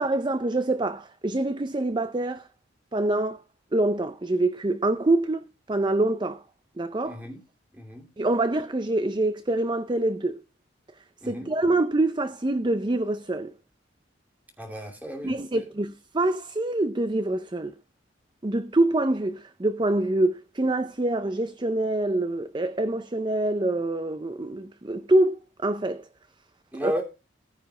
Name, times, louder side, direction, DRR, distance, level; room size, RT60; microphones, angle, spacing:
voice 1, 0.0-2.5 2.9-3.4 3.7-6.4 6.8-7.2 8.2-10.4 11.2-13.5 15.2-17.7 18.4-26.1 26.8-27.0, right 2 dB, 25° right, 0.5 m, -25 dB
voice 2, 7.0-7.4 7.7-8.1 11.2-11.5 14.6-15.6 26.7-27.0, equal, 10° right, 2.7 m, -34 dB
15.0 x 5.0 x 5.9 m
head